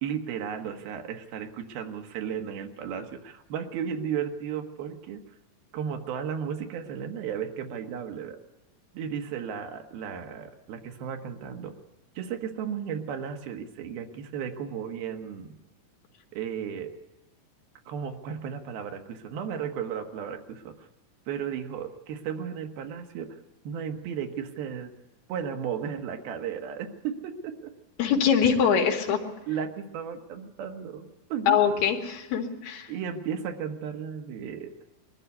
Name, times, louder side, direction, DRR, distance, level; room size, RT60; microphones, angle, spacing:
voice 1, 0.0-5.2 5.7-8.4 8.9-11.7 12.2-15.5 16.3-16.9 17.9-20.7 21.3-23.4 23.6-24.9 25.3-27.6 29.1-31.6 32.9-34.7, right 8 dB, 80° right, 5 dB, 3.3 m, -34 dB
voice 2, 28.0-29.2 31.5-32.9, left 7 dB, 90° left, 3 dB, 4.1 m, -23 dB
22.0 x 13.5 x 9.6 m, 1.1 s
omnidirectional pair, 4.3 m